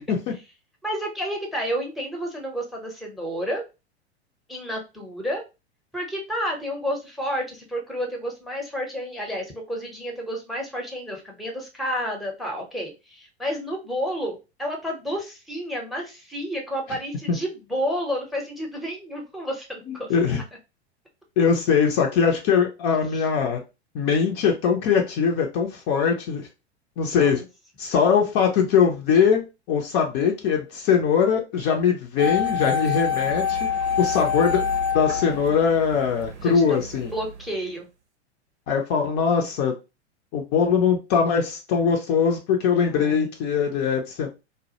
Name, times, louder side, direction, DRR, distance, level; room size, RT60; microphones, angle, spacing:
voice 1, 0.8-3.6 4.5-5.4 5.9-20.1 23.1-23.2 27.2-27.5 36.4-36.8 37.1-37.9 42.9-43.3, equal, ahead, 0.6 m, -30 dB
voice 2, 19.9-20.4 21.4-23.6 23.9-26.5 27.0-27.4 27.8-33.6 34.0-34.6 34.9-37.1 38.7-39.7 40.3-44.3, left 6 dB, 40° left, 0.5 m, -21 dB
sound 1, 32.2-36.3 36.6-36.7, left 6 dB, 80° right, 0.6 m, -25 dB
2.2 x 2.0 x 2.7 m
figure-of-eight pair, 95°, 34 cm